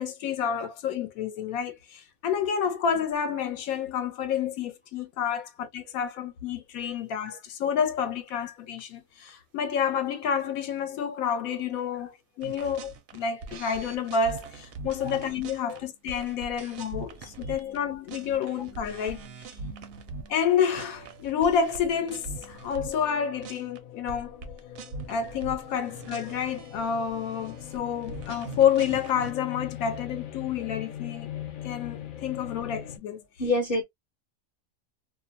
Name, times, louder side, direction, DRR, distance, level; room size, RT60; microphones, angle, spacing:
voice 1, 0.0-19.5 20.3-24.4 25.1-31.3 31.6-33.2, left 7 dB, 90° left, 1.1 m, -29 dB
sound 1, 7.3-7.4 7.8-7.9 8.3-8.4 8.8-8.9 9.3-9.4 9.8-9.9 10.2-10.5 10.8-10.9 11.3-11.4 11.8-11.9 12.1-12.2 14.2-14.3 14.6-22.9, right 5 dB, 80° right, 1.0 m, -56 dB
sound 2, 12.4-17.8 18.1-20.4 20.7-23.1 23.4-23.8 24.1-29.3, right 3 dB, 60° right, 0.6 m, -42 dB
sound 3, 21.1-33.0, left 10 dB, 70° left, 0.4 m, -42 dB
voice 2, 33.4-33.8, left 2 dB, 50° left, 0.8 m, -28 dB
2.7 x 2.0 x 2.7 m
omnidirectional pair, 1.4 m